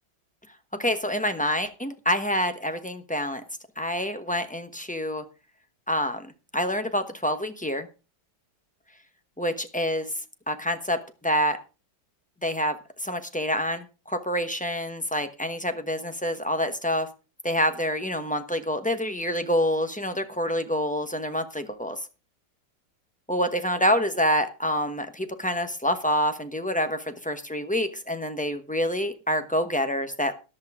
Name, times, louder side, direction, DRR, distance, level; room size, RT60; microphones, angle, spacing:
voice 1, 0.8-3.4 3.8-5.2 5.9-6.3 6.5-7.9 9.4-10.1 10.5-11.6 12.4-17.1 17.4-22.0 23.3-30.3, equal, 5° left, 8 dB, 0.6 m, -27 dB
14.0 x 11.0 x 3.6 m, 0.31 s
omnidirectional pair, 2.0 m